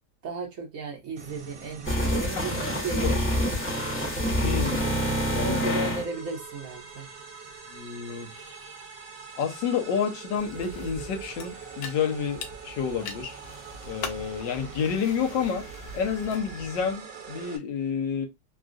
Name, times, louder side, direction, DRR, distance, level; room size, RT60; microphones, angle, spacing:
voice 1, 0.2-3.6 5.4-7.1 14.1-14.3, right 3 dB, 60° right, 1.0 m, -35 dB
sound 1, 1.2-17.6, right 6 dB, 80° right, 1.3 m, -43 dB
sound 2, 1.8-6.0, equal, 15° left, 0.4 m, -27 dB
voice 2, 2.4-3.2 4.4-4.8 5.2-5.9 7.7-8.7 9.4-13.4 13.8-15.7 15.9-18.3, left 7 dB, 85° left, 1.4 m, -30 dB
sound 3, 10.4-16.9, left 4 dB, 70° left, 1.0 m, -42 dB
3.6 x 2.3 x 2.4 m
omnidirectional pair, 1.9 m